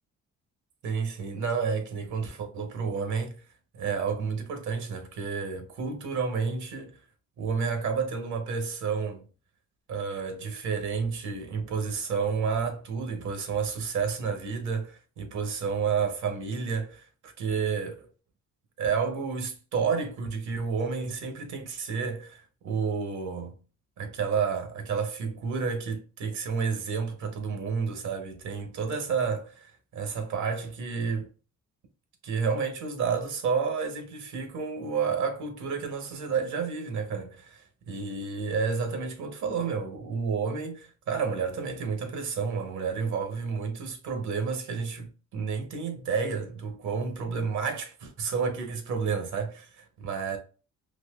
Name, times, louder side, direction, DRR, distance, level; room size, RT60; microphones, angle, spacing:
voice 1, 0.8-3.3 3.7-6.9 7.4-9.2 9.9-18.1 18.8-23.6 24.0-31.3 32.2-50.4, right 5 dB, 75° right, 1.0 m, -30 dB
4.0 x 2.7 x 2.3 m
cardioid pair, 90°, 30 cm